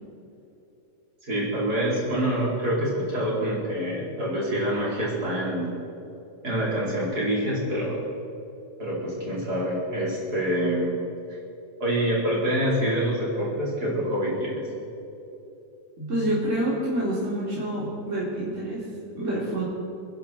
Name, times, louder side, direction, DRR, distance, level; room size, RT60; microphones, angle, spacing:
voice 1, 1.2-5.7 6.4-8.0 8.8-11.0 11.8-14.6, right 1 dB, 60° right, -6 dB, 5.7 m, -26 dB
voice 2, 16.0-18.8 19.1-19.6, right 1 dB, 45° right, -8 dB, 4.3 m, -27 dB
29.5 x 11.0 x 4.5 m, 3.0 s
omnidirectional pair, 1.9 m